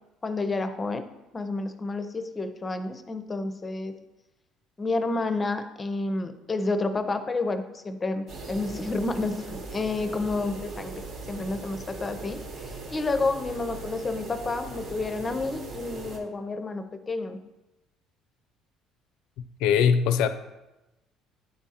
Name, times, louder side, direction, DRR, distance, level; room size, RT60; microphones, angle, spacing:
voice 1, 0.2-1.0 1.3-3.9 4.8-11.0 11.3-17.4, left 3 dB, 25° left, 9 dB, 0.5 m, -30 dB
sound 1, 8.3-16.2, right 3 dB, 60° right, 1.1 m, -39 dB
voice 2, 19.6-20.3, left 7 dB, 85° left, 11 dB, 0.4 m, -21 dB
9.8 x 3.6 x 2.8 m, 1.0 s
cardioid pair, 110°, 0 cm